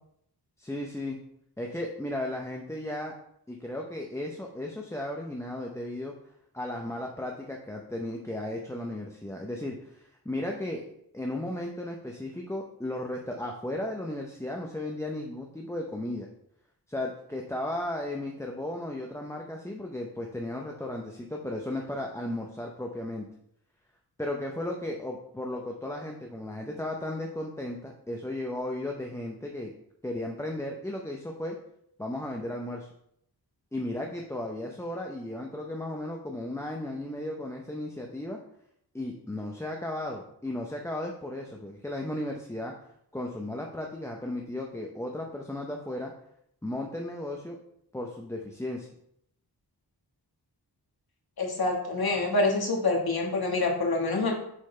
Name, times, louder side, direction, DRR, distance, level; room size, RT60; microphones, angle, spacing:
voice 1, 0.6-1.2 1.6-3.1 3.5-6.1 6.5-10.8 11.1-16.3 16.9-23.3 24.2-29.7 30.0-31.6 32.0-32.9 33.7-38.4 38.9-42.7 43.1-46.1 46.6-47.6 47.9-48.9, left 1 dB, 5° left, 0 dB, 0.6 m, -35 dB
voice 2, 51.4-54.3, left 2 dB, 65° left, 0 dB, 1.5 m, -26 dB
6.3 x 3.9 x 4.3 m, 0.74 s
wide cardioid pair, 105°, 40 cm